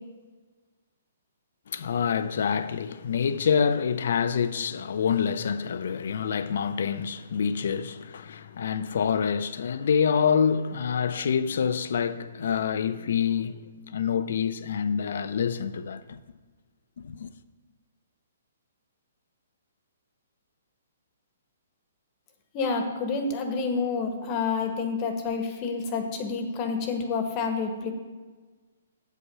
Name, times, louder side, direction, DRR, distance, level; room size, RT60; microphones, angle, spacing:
voice 1, 1.7-16.2 17.0-17.3, left 7 dB, 65° left, 0.6 m, -27 dB
voice 2, 22.5-27.9, left 4 dB, 30° left, 1.3 m, -28 dB
8.4 x 8.2 x 5.6 m
hypercardioid pair, 150°, 0 cm